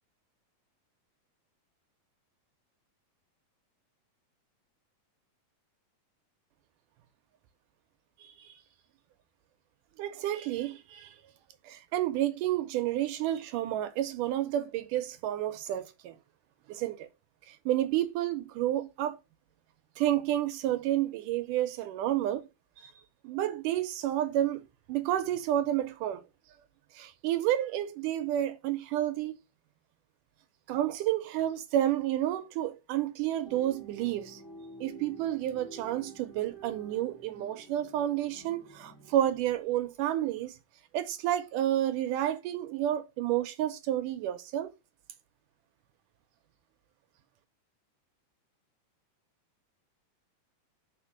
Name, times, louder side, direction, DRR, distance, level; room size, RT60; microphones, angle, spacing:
voice 1, 8.2-8.5 10.0-11.2 11.6-16.2 16.7-17.1 17.5-19.2 20.0-22.5 22.8-22.9 23.2-26.2 26.9-29.4 30.7-34.4 34.8-40.6 40.9-44.7, right 12 dB, 75° right, 2.2 m, -30 dB
sound 1, 33.4-39.4, right 3 dB, 15° left, 0.8 m, -50 dB
5.1 x 4.2 x 5.8 m
omnidirectional pair, 3.9 m